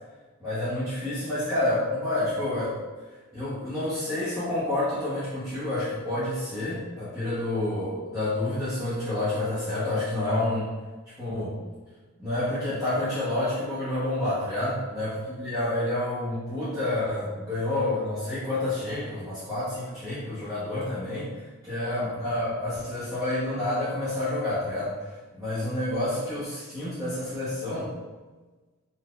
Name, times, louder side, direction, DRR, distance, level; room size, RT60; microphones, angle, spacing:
voice 1, 0.4-2.8 3.3-10.7 11.2-11.6 12.2-21.3 21.6-27.9, left 1 dB, 15° right, -14 dB, 1.1 m, -29 dB
4.2 x 2.7 x 3.3 m, 1.3 s
head